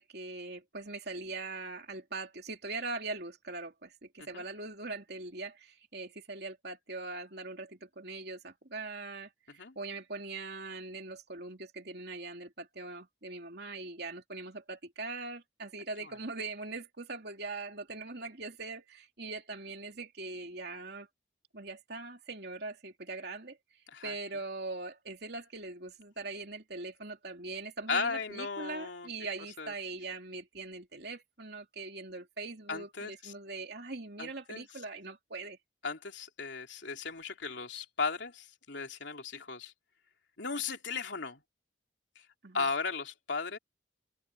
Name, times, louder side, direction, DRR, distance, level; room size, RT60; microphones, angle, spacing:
voice 1, 0.0-21.1 21.5-23.6 24.0-35.6 42.4-42.7, right 3 dB, 60° right, 3.2 m, -41 dB
voice 2, 27.9-29.1 29.6-29.7 32.7-33.3 34.2-34.7 35.8-39.7 40.4-41.4 42.5-43.6, left 4 dB, 75° left, 3.1 m, -36 dB
open air
head